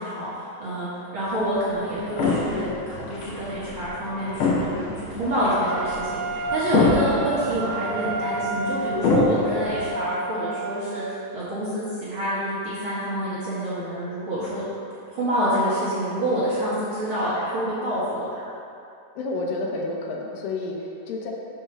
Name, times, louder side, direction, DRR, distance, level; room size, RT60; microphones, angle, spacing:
voice 1, 0.0-4.7 5.0-14.6 15.1-18.4, equal, 50° right, -10 dB, 1.8 m, -27 dB
sound 1, 1.3-9.9, left 3 dB, 65° left, 1.9 m, -27 dB
Wind instrument woodwind instrument, 5.6-10.9, right 3 dB, 85° right, 2.4 m, -31 dB
voice 2, 19.2-21.3, left 2 dB, 85° left, 0 dB, 2.7 m, -30 dB
6.0 x 5.5 x 6.0 m, 2.6 s
omnidirectional pair, 4.0 m